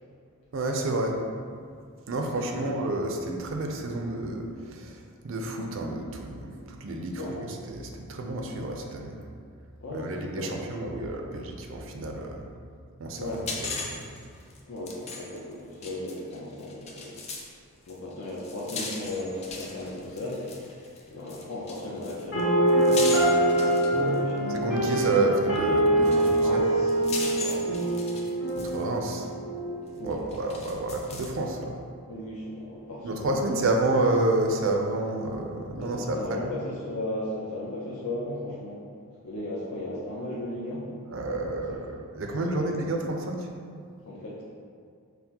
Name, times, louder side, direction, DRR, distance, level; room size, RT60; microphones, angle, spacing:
voice 1, 0.5-1.2 2.1-9.2 9.9-12.4 13.0-13.3 13.6-14.1 24.5-26.6 28.5-29.3 30.0-31.8 33.0-36.4 41.1-43.5, right 2 dB, 60° right, 2 dB, 0.4 m, -29 dB
voice 2, 2.4-2.7 7.2-7.5 9.8-10.6 13.2-13.4 14.7-17.2 17.9-20.6 21.1-24.9 26.4-27.9 30.0-30.2 32.0-33.4 35.8-38.8 39.2-40.9 41.5-41.8 42.2-42.8 44.1-44.4, left 1 dB, 70° left, -6 dB, 0.6 m, -36 dB
sound 1, 13.3-17.5 17.9-24.4 25.5-25.6 26.0-28.8 29.1-29.2 30.1-31.4, left 3 dB, 30° left, 0.3 m, -38 dB
sound 2, 22.3-30.3, right 1 dB, 45° left, 1.1 m, -24 dB
5.6 x 2.1 x 2.8 m, 2.1 s
head